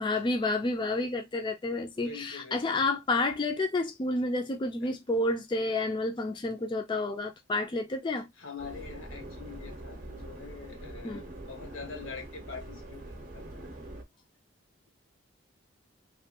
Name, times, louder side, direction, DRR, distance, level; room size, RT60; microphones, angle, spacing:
voice 1, 0.0-8.3 11.0-11.2, left 2 dB, 25° left, 0.3 m, -30 dB
voice 2, 1.9-2.9 4.8-4.9 8.4-13.4, left 5 dB, 90° left, 1.1 m, -44 dB
Subway metro underground, 8.6-14.0, right 1 dB, 45° right, 0.7 m, -44 dB
3.0 x 2.2 x 2.8 m
head